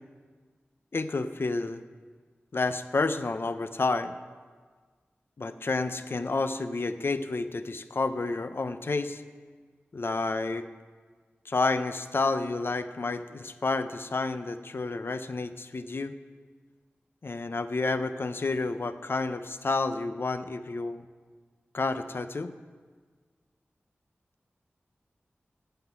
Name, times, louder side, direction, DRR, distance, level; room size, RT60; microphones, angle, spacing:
voice 1, 0.9-1.8 2.5-4.1 5.4-9.2 9.9-10.7 11.5-16.1 17.2-21.0 21.7-22.5, left 3 dB, 65° left, 10 dB, 0.8 m, -30 dB
16.0 x 5.8 x 9.3 m, 1.5 s
cardioid pair, 50°, 4 cm